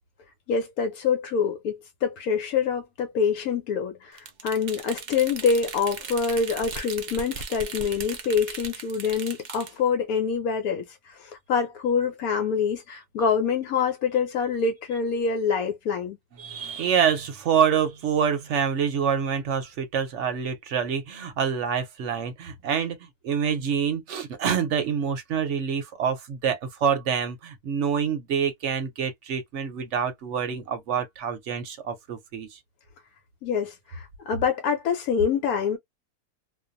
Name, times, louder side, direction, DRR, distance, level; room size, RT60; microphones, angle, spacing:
voice 1, 0.5-16.2 33.4-35.8, left 6 dB, 80° left, 1.1 m, -26 dB
sound 1, 4.2-9.7, right 5 dB, 85° right, 0.4 m, -38 dB
voice 2, 16.4-23.0 23.2-32.6, right 7 dB, 60° right, 0.9 m, -26 dB
2.5 x 2.2 x 2.5 m
omnidirectional pair, 1.6 m